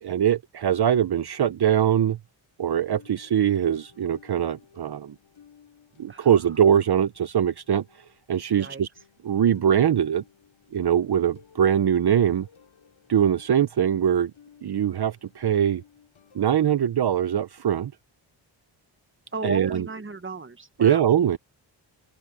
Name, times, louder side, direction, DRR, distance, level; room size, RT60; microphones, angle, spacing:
voice 1, 0.0-2.2 2.6-5.1 6.0-7.8 8.3-8.9 9.2-10.2 10.7-12.5 13.1-14.3 14.6-15.8 16.3-17.9 19.4-19.9 20.8-21.4, right 9 dB, 55° right, 0.9 m, -22 dB
sound 1, 2.9-16.4, left 8 dB, 70° left, 7.3 m, -56 dB
voice 2, 19.3-21.0, right 3 dB, 25° right, 1.8 m, -34 dB
open air
cardioid pair, 55°, 47 cm